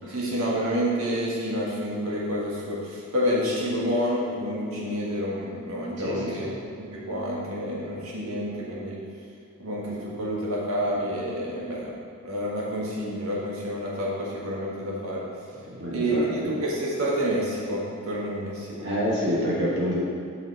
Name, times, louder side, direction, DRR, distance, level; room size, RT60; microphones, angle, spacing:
voice 1, 0.1-6.5 6.8-9.0 9.6-11.9 12.2-15.3 15.9-18.9, equal, 75° right, -5 dB, 1.6 m, -28 dB
voice 2, 6.0-6.5 15.8-16.5 18.8-20.0, equal, 55° right, -6 dB, 1.8 m, -27 dB
5.8 x 5.7 x 4.7 m, 2.3 s
head